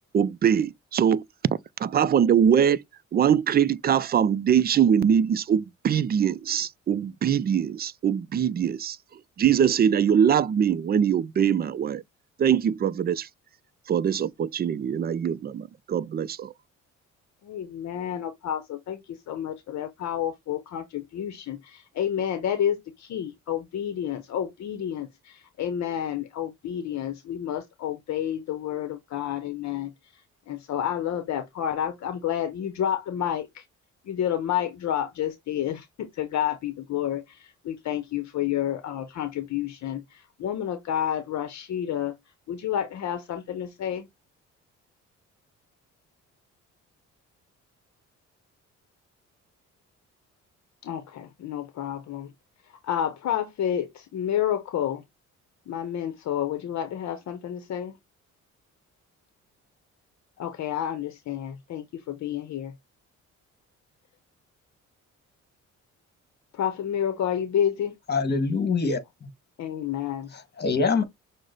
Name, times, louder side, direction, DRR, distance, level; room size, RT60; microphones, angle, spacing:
voice 1, 0.1-1.2 1.8-2.8 3.1-9.0 9.4-12.0 12.4-13.3 13.9-16.5, right 8 dB, 30° right, 0.4 m, -22 dB
voice 2, 17.4-19.0 19.3-29.9 30.5-33.6 34.1-37.4 37.6-42.2 42.5-44.1 50.8-52.3 52.8-55.0 55.7-57.9 60.4-62.7 66.6-67.9 69.6-70.3, left 10 dB, 65° left, 0.8 m, -30 dB
voice 3, 68.1-69.0 70.3-71.0, left 4 dB, 35° left, 1.5 m, -24 dB
6.3 x 2.1 x 3.9 m
cardioid pair, 90°, 30 cm